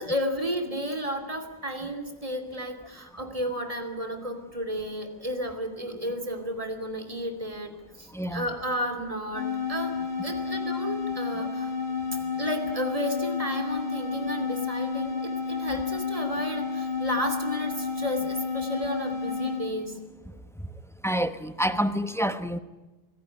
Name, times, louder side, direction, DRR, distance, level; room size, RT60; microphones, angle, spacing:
voice 1, 0.0-7.7 8.0-10.0 10.2-11.7 12.1-20.0, equal, 35° right, 7 dB, 2.9 m, -32 dB
voice 2, 8.1-8.5 21.0-22.6, equal, 5° left, 11 dB, 1.0 m, -27 dB
sound 1, 9.3-19.7, left 5 dB, 60° left, 4.3 m, -31 dB
24.5 x 17.5 x 10.0 m, 1.1 s
omnidirectional pair, 1.0 m